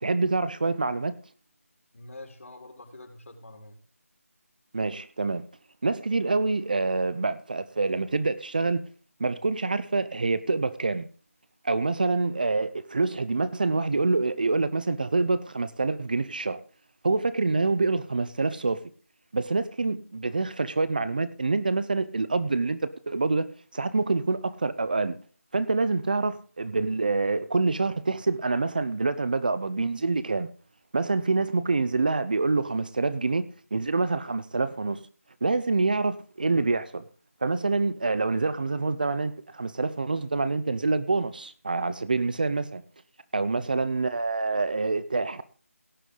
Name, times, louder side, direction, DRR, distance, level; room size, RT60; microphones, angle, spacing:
voice 1, 0.0-1.1 4.7-5.4 5.8-8.8 9.2-11.1 11.6-16.6 17.0-18.8 19.3-23.5 23.7-25.2 25.5-30.5 30.9-33.4 33.7-35.0 35.4-37.0 37.4-42.8 43.3-45.4, right 3 dB, 35° right, 0.7 m, -26 dB
voice 2, 1.9-3.8 43.4-43.7, left 2 dB, 65° left, 4.3 m, -46 dB
17.0 x 8.1 x 3.9 m
figure-of-eight pair, 175°, 8 cm